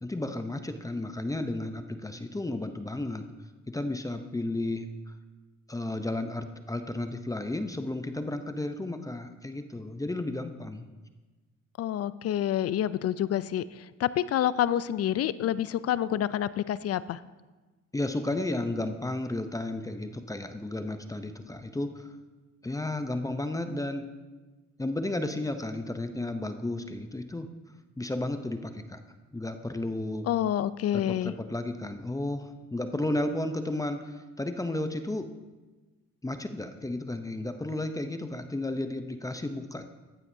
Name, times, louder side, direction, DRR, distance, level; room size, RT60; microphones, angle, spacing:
voice 1, 0.0-3.3 3.7-5.1 5.7-10.9 17.9-22.1 22.6-24.1 24.8-27.5 28.0-29.0 29.3-30.3 30.9-35.3 36.2-39.9, left 2 dB, 10° left, 8 dB, 0.6 m, -33 dB
voice 2, 11.8-17.2 30.3-31.3, left 11 dB, 55° left, 16 dB, 0.4 m, -28 dB
14.0 x 9.0 x 2.7 m, 1.2 s
cardioid pair, 90°, 30 cm